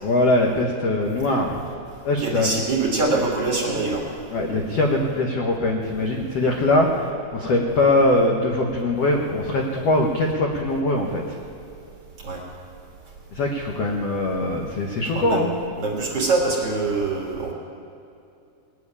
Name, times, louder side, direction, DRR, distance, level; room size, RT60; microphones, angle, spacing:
voice 1, 0.0-1.6 2.0-2.5 4.3-11.4 13.3-15.5, left 2 dB, 70° left, 1 dB, 1.5 m, -22 dB
voice 2, 2.2-4.0 12.2-12.4 15.2-15.4 15.8-17.5, right 3 dB, 50° right, -2 dB, 2.2 m, -24 dB
19.5 x 7.1 x 9.8 m, 2.6 s
omnidirectional pair, 4.4 m